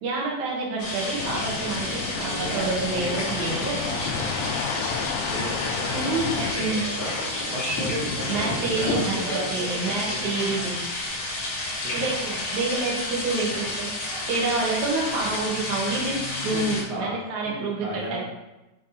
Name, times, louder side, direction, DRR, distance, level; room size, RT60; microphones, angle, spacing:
voice 1, 0.0-3.8 5.9-6.9 8.3-9.2 9.5-10.8 11.9-18.2, right 3 dB, 55° right, -3 dB, 2.5 m, -28 dB
sound 1, 0.8-16.8, left 2 dB, 45° left, 2.7 m, -31 dB
sound 2, 1.2-6.5, left 7 dB, 85° left, 2.0 m, -32 dB
voice 2, 2.2-10.7 11.8-12.1 13.4-13.7 16.5-17.2 17.4-18.2, right 1 dB, 85° right, -4 dB, 1.4 m, -35 dB
sound 3, 3.5-9.0, left 2 dB, 60° left, 3.5 m, -34 dB
8.9 x 3.5 x 4.2 m, 1.0 s
omnidirectional pair, 4.6 m